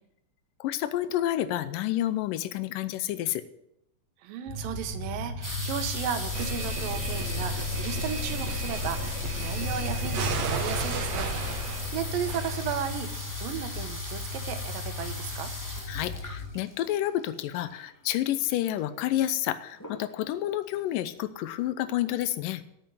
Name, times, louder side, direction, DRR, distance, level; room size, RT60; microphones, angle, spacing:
voice 1, 0.6-3.4 15.9-22.6, left 13 dB, 80° left, 13 dB, 2.3 m, -29 dB
voice 2, 4.2-15.5, right 9 dB, 85° right, 9 dB, 2.8 m, -35 dB
sound 1, 4.5-16.5, left 4 dB, 60° left, 3.3 m, -36 dB
sound 2, 5.4-18.0 18.8-18.9 19.1-19.5 19.8-20.4 20.9-21.0 21.2-21.3, equal, 5° left, 1.5 m, -39 dB
sound 3, 6.3-13.2, right 2 dB, 60° right, 1.8 m, -34 dB
8.8 x 8.0 x 9.3 m, 0.80 s
omnidirectional pair, 3.9 m